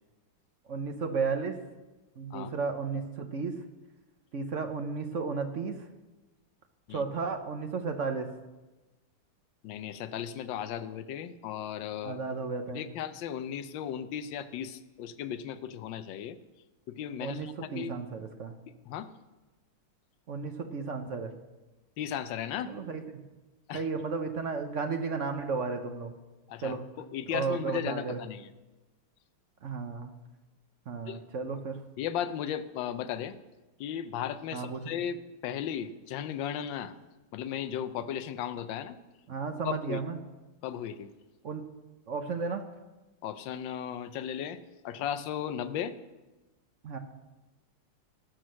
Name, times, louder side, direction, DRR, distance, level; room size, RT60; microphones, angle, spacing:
voice 1, 0.7-1.6 2.2-3.6 4.3-5.9 6.9-8.3 12.0-12.9 17.2-18.6 20.3-21.3 22.7-23.2 23.7-26.1 26.6-26.8 27.3-28.2 29.6-30.1 30.9-31.8 34.5-34.8 39.3-40.2 41.4-41.7 42.1-42.6 46.8-47.0, right 4 dB, 60° right, 6 dB, 0.7 m, -33 dB
voice 2, 9.6-12.2 12.7-16.4 16.9-17.9 18.7-19.1 22.0-22.8 23.7-23.8 26.5-28.5 31.1-31.2 32.0-33.4 33.8-36.9 37.3-39.0 39.6-40.0 40.6-41.1 43.2-44.6 44.8-45.9, left 9 dB, 70° left, 11 dB, 1.3 m, -36 dB
18.0 x 6.2 x 6.3 m, 1.1 s
omnidirectional pair, 2.3 m